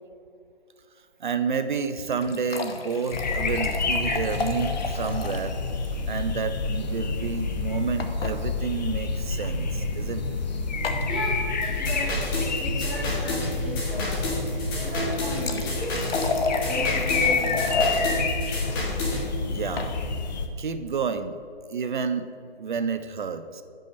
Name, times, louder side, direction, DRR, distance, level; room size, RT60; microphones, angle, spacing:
voice 1, 1.2-5.5 6.1-10.4 19.5-19.9 20.6-21.4 21.7-22.3 22.6-23.6, right 5 dB, 55° right, 10 dB, 0.5 m, -30 dB
sound 1, 1.8-5.6 5.8-5.9 6.2-6.3 8.0-8.4 9.3-9.5 10.8-11.1 14.9-18.0 19.5-19.9, left 4 dB, 70° left, 0.9 m, -32 dB
sound 2, 3.1-20.5, left 3 dB, 45° left, 0.6 m, -28 dB
voice 2, 11.0-12.1 12.6-16.1 16.6-18.2, right 1 dB, 5° left, -16 dB, 0.4 m, -35 dB
sound 3, 11.6-19.2, left 1 dB, 20° left, 1.4 m, -32 dB
6.8 x 5.5 x 5.1 m, 2.4 s
hypercardioid pair, 150°, 30 cm